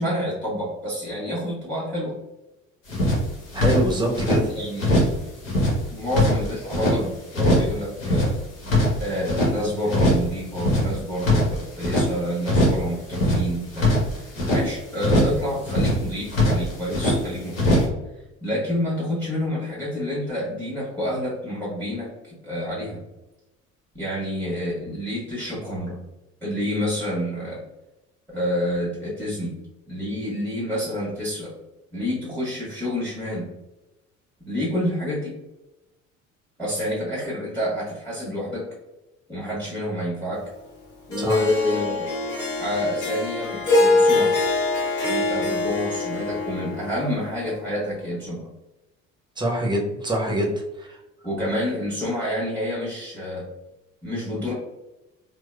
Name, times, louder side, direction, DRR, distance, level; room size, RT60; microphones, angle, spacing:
voice 1, 0.0-2.2 4.5-5.0 5.9-8.4 9.0-17.9 18.4-23.0 23.9-26.0 26.4-27.6 28.3-29.6 29.9-31.5 31.9-33.5 34.5-35.3 36.6-38.7 39.3-40.4 41.1-42.1 42.6-44.4 45.0-48.4 51.2-53.4 54.0-54.5, left 1 dB, 5° left, -7 dB, 1.5 m, -28 dB
sound 1, 2.9-4.4 4.8-5.2 5.4-7.0 7.3-7.7 8.0-9.5 9.9-10.3 10.5-12.1 12.4-12.8 13.1-14.6 15.0-15.4 15.6-17.2 17.5-17.9, left 1 dB, 75° left, 1.0 m, -21 dB
voice 2, 3.5-4.5 41.2-41.5 49.4-51.0, right 1 dB, 10° right, 0 dB, 0.8 m, -24 dB
Harp, 41.1-47.5, left 2 dB, 50° left, 1.3 m, -24 dB
4.5 x 2.1 x 2.2 m, 0.98 s
figure-of-eight pair, 55°, 39 cm